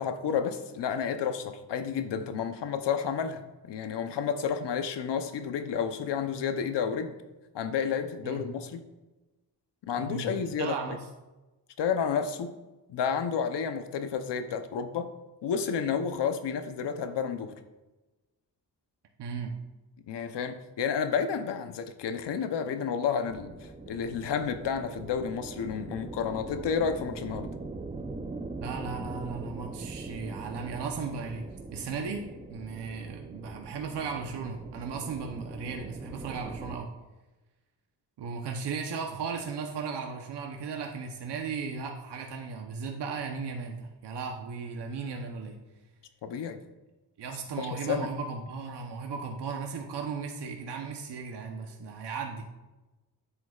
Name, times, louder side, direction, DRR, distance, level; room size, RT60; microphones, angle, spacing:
voice 1, 0.0-7.1 7.5-8.8 9.8-11.0 11.8-12.5 12.9-15.1 15.4-17.5 20.1-27.5 46.2-46.6 47.6-48.1, left 7 dB, 85° left, 8 dB, 0.8 m, -31 dB
voice 2, 10.0-11.0 19.2-19.5 28.6-31.5 31.7-32.2 32.5-36.9 38.2-45.6 47.2-52.4, right 5 dB, 75° right, 2 dB, 0.9 m, -36 dB
sound 1, 23.3-36.8, right 3 dB, 15° right, 0.6 m, -42 dB
9.9 x 7.8 x 2.4 m, 1.1 s
wide cardioid pair, 120°, 41 cm